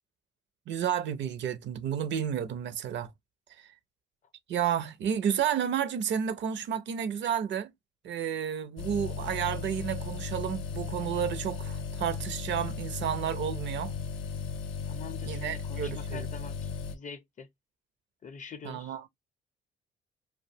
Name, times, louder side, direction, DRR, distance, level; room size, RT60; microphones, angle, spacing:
voice 1, 0.7-3.1 3.6-3.7 4.5-7.7 8.0-13.9 15.3-16.3 18.6-19.0, right 9 dB, 65° right, 0.5 m, -31 dB
sound 1, 8.8-16.9, left 5 dB, 85° left, 0.5 m, -36 dB
voice 2, 14.9-17.5 18.2-19.0, left 6 dB, 40° left, 0.5 m, -45 dB
2.5 x 2.2 x 2.6 m
cardioid pair, 90°, 20 cm